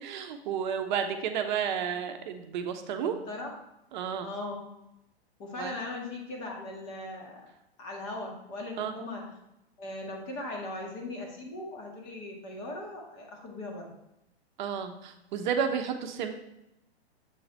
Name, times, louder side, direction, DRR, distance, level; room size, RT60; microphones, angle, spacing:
voice 1, 0.0-3.1 3.9-4.3 5.6-5.8 8.8-8.9 14.6-16.3, right 7 dB, 45° right, 6 dB, 0.7 m, -31 dB
voice 2, 2.9-3.5 4.2-4.7 5.4-7.4 7.8-9.2 9.8-13.9, left 2 dB, 40° left, 0 dB, 1.7 m, -39 dB
7.1 x 3.9 x 4.3 m, 0.87 s
hypercardioid pair, 120°, 33 cm